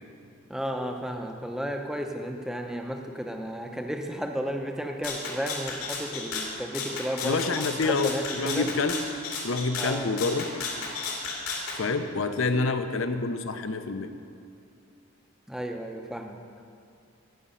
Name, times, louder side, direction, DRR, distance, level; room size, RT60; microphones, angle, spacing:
voice 1, 0.5-8.7 9.8-10.4 15.5-16.4, equal, ahead, 3 dB, 0.7 m, -33 dB
Rattle (instrument), 5.0-11.8, left 4 dB, 85° left, 2.4 m, -34 dB
voice 2, 7.2-9.0 9.4-10.5 11.8-14.1, left 3 dB, 65° left, 8 dB, 0.7 m, -27 dB
17.5 x 6.2 x 5.6 m, 2.4 s
head